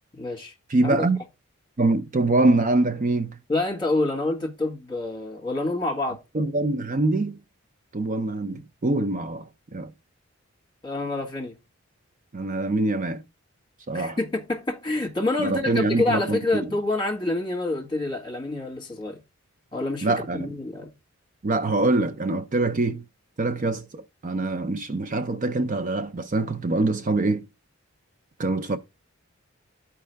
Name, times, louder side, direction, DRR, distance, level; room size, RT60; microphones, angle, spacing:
voice 1, 0.1-0.5 0.8-1.0 3.5-6.2 10.8-11.6 13.9-19.2 19.7-20.9, left 2 dB, 20° left, 1.6 m, -27 dB
voice 2, 0.7-1.2 1.8-3.4 6.3-7.4 7.9-9.9 12.3-13.2 13.9-14.2 15.4-16.7 20.0-20.5 21.4-23.0 23.4-27.5 28.4-28.8, right 2 dB, 35° right, 0.5 m, -24 dB
12.0 x 4.7 x 3.4 m
head